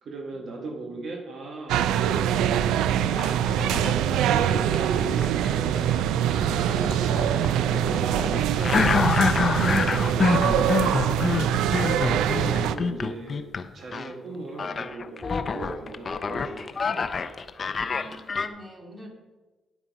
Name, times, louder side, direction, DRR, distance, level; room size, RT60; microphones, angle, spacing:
voice 1, 0.0-3.9 4.2-5.8 6.4-11.6 12.2-17.0, right 2 dB, 60° right, 2 dB, 1.5 m, -38 dB
sound 1, 1.7-12.8, right 10 dB, 90° right, 0.4 m, -24 dB
sound 2, 3.2-4.2 4.7-13.7 13.9-14.1 14.6-18.5, left 5 dB, 40° left, 0.6 m, -27 dB
voice 2, 17.9-19.1, equal, 20° right, 1 dB, 2.3 m, -45 dB
10.0 x 8.0 x 4.7 m, 1.2 s
cardioid pair, 90°, 0 cm